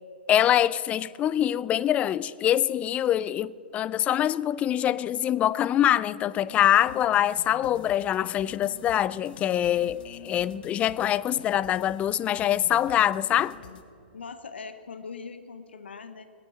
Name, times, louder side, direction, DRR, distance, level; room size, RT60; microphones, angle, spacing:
voice 1, 0.3-13.6, left 11 dB, 25° left, 0.3 m, -24 dB
sound 1, 6.5-13.8, left 6 dB, 60° left, 1.1 m, -47 dB
voice 2, 14.1-16.3, left 5 dB, 80° left, 0.9 m, -41 dB
20.5 x 8.9 x 5.7 m
hypercardioid pair, 120°, 6 cm